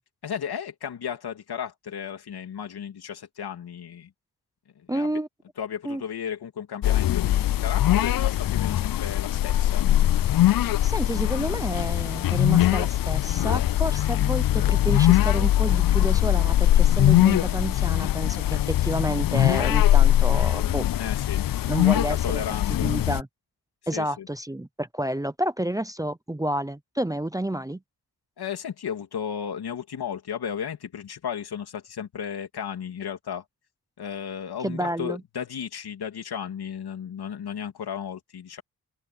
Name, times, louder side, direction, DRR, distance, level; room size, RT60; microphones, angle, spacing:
voice 1, 0.2-4.1 4.7-5.1 5.6-9.9 21.0-23.1 23.9-24.3 28.4-33.4 34.0-38.6, left 8 dB, 80° left, 3.0 m, -34 dB
voice 2, 4.9-5.3 5.8-6.0 10.8-20.9 21.7-22.4 22.7-23.3 23.9-27.8 34.6-35.2, right 1 dB, 10° right, 0.7 m, -30 dB
sound 1, 6.8-23.2, left 13 dB, 65° left, 0.5 m, -21 dB
wide cardioid pair, 115°, 38 cm